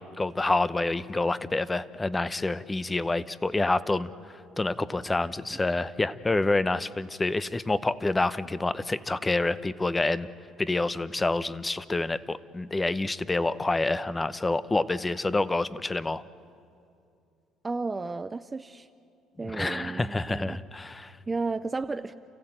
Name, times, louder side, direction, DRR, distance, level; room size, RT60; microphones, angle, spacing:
voice 1, 0.0-4.1 4.6-10.3 10.6-16.2 19.4-21.1, left 2 dB, 15° left, 15 dB, 0.7 m, -27 dB
voice 2, 17.6-18.9 19.4-20.6 21.3-22.1, right 3 dB, 20° right, 10 dB, 0.5 m, -33 dB
29.5 x 15.5 x 8.9 m, 2.5 s
cardioid pair, 105°, 0 cm